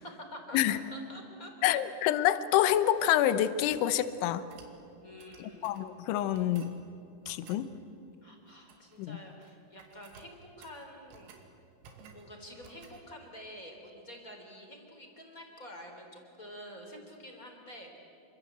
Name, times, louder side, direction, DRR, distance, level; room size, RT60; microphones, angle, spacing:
voice 1, 0.0-1.8 5.0-5.7 8.2-11.3 12.0-18.0, equal, 20° left, 2 dB, 2.8 m, -48 dB
voice 2, 1.6-4.5 5.4-6.7 7.3-7.7 9.0-9.2, left 12 dB, 75° left, 13 dB, 3.1 m, -27 dB
sound 1, 2.7-3.9 4.5-4.8 5.2-5.9 6.3-6.8 7.2-7.7 8.5-9.1 9.3-9.5 9.8-11.5 11.8-12.3 12.6-13.0, right 5 dB, 80° right, 5.0 m, -56 dB
28.5 x 25.0 x 8.1 m, 2.7 s
omnidirectional pair, 6.0 m